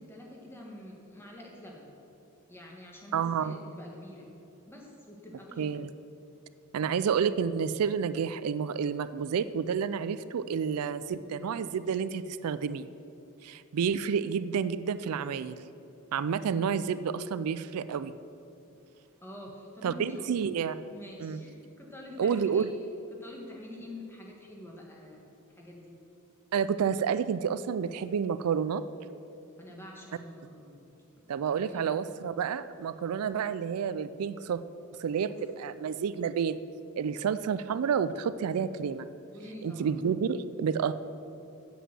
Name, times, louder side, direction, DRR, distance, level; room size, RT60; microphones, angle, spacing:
voice 1, 0.0-1.9 2.5-4.3 4.7-5.6 19.2-20.3 20.9-22.6 23.1-25.2 25.6-25.9 29.6-30.8 31.6-32.0 35.3-35.4 39.3-39.9, left 1 dB, 10° left, -1 dB, 1.5 m, -46 dB
voice 2, 3.1-3.6 5.6-5.9 6.7-12.9 13.4-15.6 16.1-18.1 19.8-20.7 21.2-21.4 22.2-22.7 26.5-28.8 31.3-34.6 35.0-35.3 35.6-36.6 37.0-39.1 39.6-40.9, right 7 dB, 85° right, 14 dB, 0.4 m, -29 dB
8.1 x 7.9 x 7.8 m, 2.8 s
head